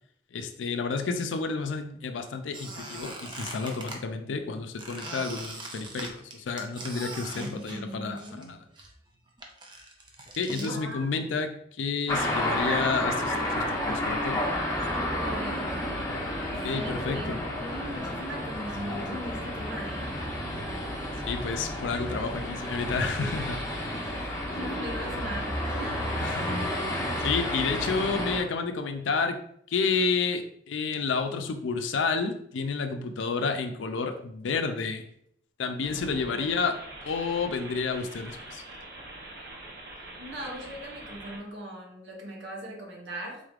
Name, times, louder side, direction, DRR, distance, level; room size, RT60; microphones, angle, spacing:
voice 1, 0.3-8.6 10.4-14.4 16.6-17.5 21.2-23.6 23.9-24.1 26.2-26.6 27.2-29.4 29.7-35.0 35.6-36.8 37.0-38.6, left 4 dB, 80° left, 7 dB, 0.4 m, -30 dB
Squeak, 2.5-4.0 4.8-8.5 8.8-10.7, right 2 dB, 25° right, 0.5 m, -41 dB
voice 2, 7.3-8.5 10.4-11.3 15.1-15.9 16.7-20.1 24.0-26.0 36.2-36.6 40.0-43.4, equal, 75° right, -2 dB, 1.1 m, -39 dB
sound 1, 12.1-28.4, left 1 dB, 15° left, 0.6 m, -31 dB
sound 2, 35.8-41.4, right 2 dB, 55° right, 0.8 m, -44 dB
3.9 x 3.3 x 2.4 m, 0.70 s
head